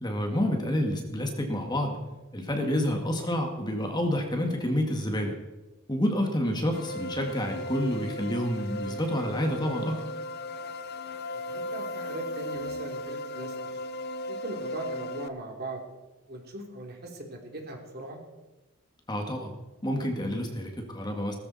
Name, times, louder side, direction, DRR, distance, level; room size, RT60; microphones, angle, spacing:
voice 1, 0.0-2.0 2.3-5.3 5.9-10.0 19.1-19.5 19.8-21.4, equal, 20° left, 3 dB, 2.0 m, -28 dB
sound 1, 6.7-15.3, left 1 dB, 50° left, 0.7 m, -36 dB
voice 2, 11.5-13.5 14.3-15.8 16.3-18.2, right 1 dB, 50° right, 1 dB, 3.2 m, -39 dB
18.5 x 14.0 x 4.2 m, 1.1 s
head